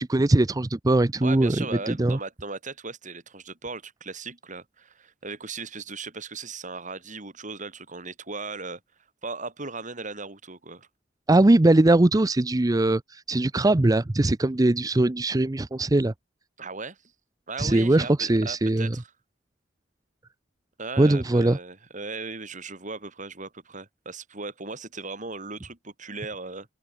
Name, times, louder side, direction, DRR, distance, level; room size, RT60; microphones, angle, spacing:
voice 1, 0.0-2.2 11.3-16.1 17.6-19.0 21.0-21.6, right 2 dB, 20° right, 0.5 m, -21 dB
voice 2, 1.2-8.8 9.2-10.9 16.6-17.0 17.5-19.1 20.8-26.7, right 3 dB, 40° right, 7.9 m, -37 dB
open air
head